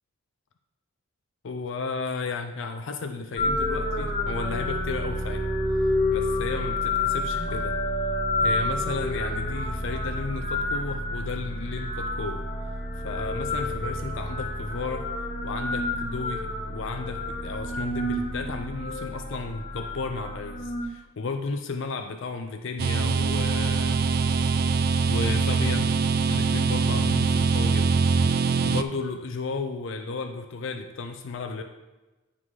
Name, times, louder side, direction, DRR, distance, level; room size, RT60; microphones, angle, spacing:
voice 1, 1.4-5.5 6.1-7.8 8.4-12.5 13.0-15.1 15.4-24.0 25.1-26.0 26.3-27.9 28.6-31.6, left 4 dB, 60° left, 6 dB, 0.5 m, -33 dB
sound 1, 3.4-20.8, left 1 dB, 40° left, 1.0 m, -29 dB
sound 2, 22.8-28.8, right 5 dB, 45° right, 0.3 m, -23 dB
9.7 x 3.8 x 4.7 m, 1.1 s
head